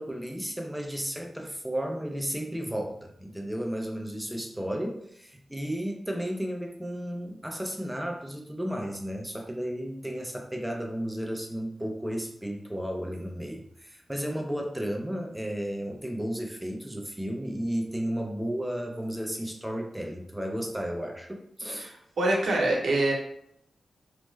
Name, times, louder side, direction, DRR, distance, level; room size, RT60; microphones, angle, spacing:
voice 1, 0.0-21.9, equal, 5° right, 2 dB, 0.4 m, -33 dB
voice 2, 21.8-23.1, right 2 dB, 80° right, -2 dB, 0.8 m, -25 dB
3.2 x 2.0 x 3.1 m, 0.72 s
wide cardioid pair, 140°, 0 cm